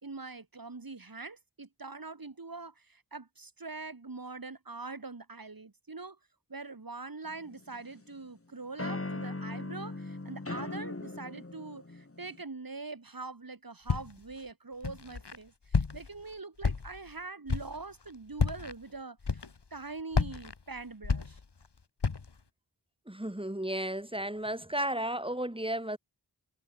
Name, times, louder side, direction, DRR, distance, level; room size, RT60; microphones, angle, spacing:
voice 1, 0.0-6.2 6.5-19.4 19.7-21.4, right 3 dB, 55° right, 3.1 m, -43 dB
sound 1, 7.3-8.1 8.8-12.4, left 2 dB, 35° left, 2.8 m, -39 dB
Walk footsteps, 13.9-14.3 14.8-15.4 15.7-16.2 16.6-17.1 17.5-17.8 18.3-18.7 19.2-19.8 20.1-21.7 22.0-22.4, left 4 dB, 85° left, 2.7 m, -31 dB
voice 2, 23.1-26.0, right 1 dB, 15° right, 2.6 m, -33 dB
wide cardioid pair, 45°, 40 cm